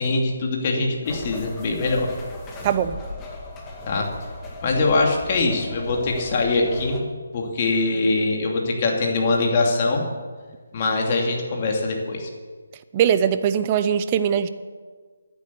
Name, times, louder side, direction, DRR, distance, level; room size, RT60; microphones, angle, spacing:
voice 1, 0.0-2.1 3.9-4.1 4.6-10.0 10.7-12.3, left 3 dB, 35° left, 0 dB, 2.8 m, -23 dB
sound 1, 1.0-7.0, left 2 dB, 15° left, 1.8 m, -37 dB
voice 2, 2.6-3.0 12.9-14.5, right 9 dB, 25° right, 12 dB, 0.7 m, -21 dB
11.5 x 10.0 x 8.3 m, 1.5 s
figure-of-eight pair, 160°, 0 cm